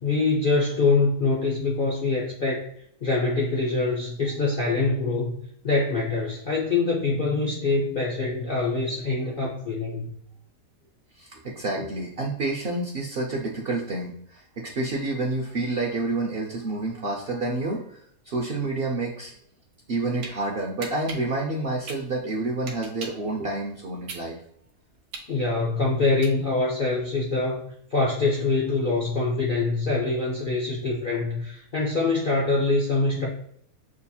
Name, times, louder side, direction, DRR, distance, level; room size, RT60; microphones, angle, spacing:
voice 1, 0.0-2.7 3.0-5.4 5.6-10.1 25.3-27.6 27.9-33.3, left 3 dB, 60° left, -3 dB, 0.5 m, -24 dB
voice 2, 11.2-18.0 18.3-19.3 19.9-24.4, right 2 dB, 60° right, -1 dB, 0.6 m, -29 dB
sound 1, 19.8-20.3 20.8-23.3 23.7-26.7, right 4 dB, 75° right, 1.2 m, -39 dB
6.1 x 2.8 x 2.3 m, 0.67 s
omnidirectional pair, 1.6 m